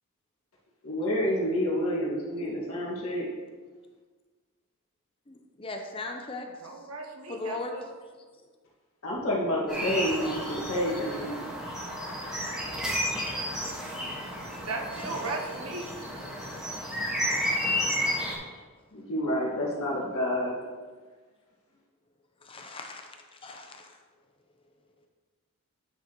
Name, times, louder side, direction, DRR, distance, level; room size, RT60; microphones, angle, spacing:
voice 1, 0.8-3.3 9.0-11.4 18.9-20.5, equal, 80° left, -4 dB, 1.8 m, -29 dB
voice 2, 5.3-6.7 7.3-7.9 9.9-10.0 14.9-15.3 18.4-18.5 22.4-24.0, left 2 dB, 25° left, 3 dB, 0.6 m, -39 dB
voice 3, 6.6-7.9 14.6-15.9, right 3 dB, 85° right, 2 dB, 1.1 m, -36 dB
sound 1, 9.7-18.3, equal, 5° right, 1.5 m, -32 dB
10.0 x 6.3 x 3.0 m, 1.4 s
head